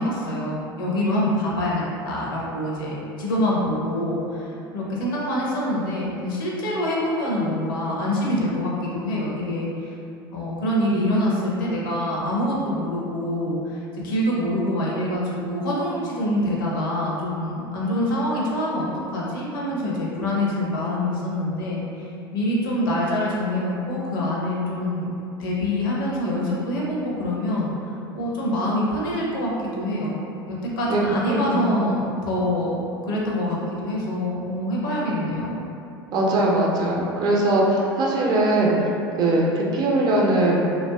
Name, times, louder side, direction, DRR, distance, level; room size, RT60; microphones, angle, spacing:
voice 1, 0.0-9.9 10.3-25.1 25.4-30.1 30.5-32.8 33.0-35.5, left 1 dB, 60° left, -4 dB, 0.5 m, -25 dB
voice 2, 30.9-31.8 36.1-38.8 39.2-40.6, right 1 dB, 35° right, -3 dB, 0.4 m, -21 dB
2.5 x 2.2 x 2.2 m, 2.7 s
figure-of-eight pair, 75°, 13 cm